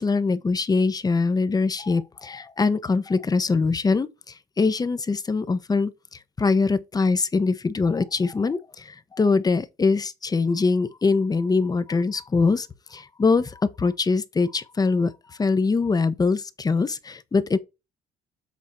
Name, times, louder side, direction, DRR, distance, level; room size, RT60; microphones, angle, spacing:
voice 1, 0.0-17.6, left 4 dB, 25° left, 0.9 m, -23 dB
8.3 x 4.1 x 4.7 m
cardioid pair, 110°, 17 cm